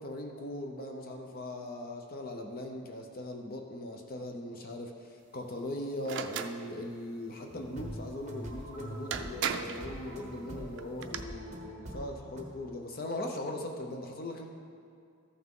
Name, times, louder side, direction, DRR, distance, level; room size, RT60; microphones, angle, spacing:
voice 1, 0.0-14.5, left 1 dB, 45° left, 2 dB, 0.7 m, -39 dB
sound 1, 6.0-6.6 8.6-8.7 9.1-9.8 10.8-11.2, right 7 dB, 55° right, 0.4 m, -34 dB
sound 2, 7.5-12.5, right 1 dB, 35° right, 1.1 m, -44 dB
14.0 x 5.9 x 3.7 m, 2.4 s
head